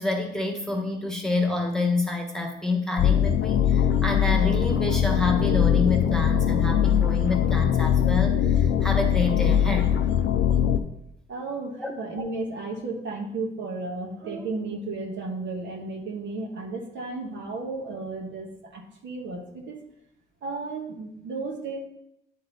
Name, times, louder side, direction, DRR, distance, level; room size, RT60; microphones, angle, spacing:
voice 1, 0.0-10.0 11.8-11.9, left 2 dB, 5° left, 1 dB, 1.3 m, -28 dB
sound 1, 3.0-10.8, left 9 dB, 70° left, 0.6 m, -21 dB
voice 2, 11.3-19.8 20.4-21.8, right 3 dB, 65° right, 1 dB, 1.4 m, -33 dB
9.7 x 4.0 x 4.1 m, 0.79 s
cardioid pair, 90°, 20 cm